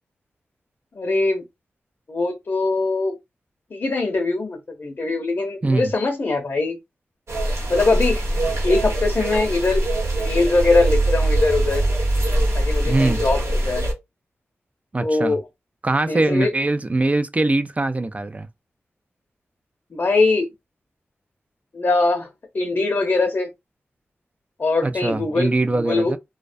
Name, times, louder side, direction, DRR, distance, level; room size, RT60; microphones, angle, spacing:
voice 1, 1.0-1.4 2.1-3.1 3.7-6.8 7.7-8.2 8.6-9.8 10.2-11.8 12.5-13.8 15.0-15.4 16.1-16.5 19.9-20.5 21.7-22.3 22.5-23.5 24.6-25.5 25.8-26.2, left 3 dB, 50° left, 0.6 m, -21 dB
sound 1, 7.3-13.9, right 1 dB, 70° right, 0.9 m, -22 dB
voice 2, 12.9-13.2 14.9-15.4 15.8-18.5 24.8-26.2, right 2 dB, 30° right, 0.3 m, -22 dB
2.3 x 2.1 x 2.5 m
cardioid pair, 50°, 5 cm